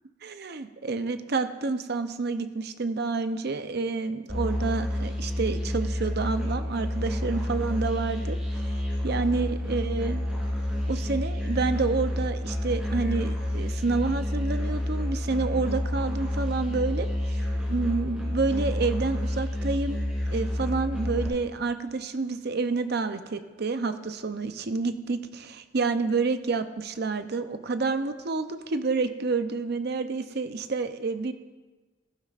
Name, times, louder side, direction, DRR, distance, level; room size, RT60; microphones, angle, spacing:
voice 1, 0.2-8.7 9.0-10.2 10.9-17.4 17.7-20.0 20.3-31.3, right 4 dB, 55° right, 9 dB, 0.6 m, -29 dB
Musical instrument, 4.3-21.3, left 1 dB, 5° right, 3.2 m, -29 dB
14.5 x 12.0 x 2.5 m, 1.3 s
head